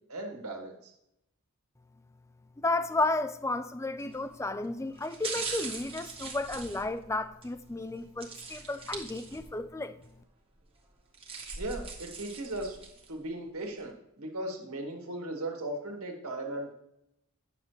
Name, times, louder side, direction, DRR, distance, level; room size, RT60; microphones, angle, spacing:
voice 1, 0.1-0.9 11.6-12.8 13.1-16.7, right 1 dB, 75° right, 2.0 m, -37 dB
voice 2, 2.6-9.9, left 2 dB, 15° left, 0.4 m, -33 dB
sound 1, 4.0-4.3 5.0-7.5 8.2-9.7 10.0-10.1 10.9-13.1 13.6-13.7, right 4 dB, 25° right, 1.4 m, -41 dB
9.6 x 6.7 x 3.1 m
head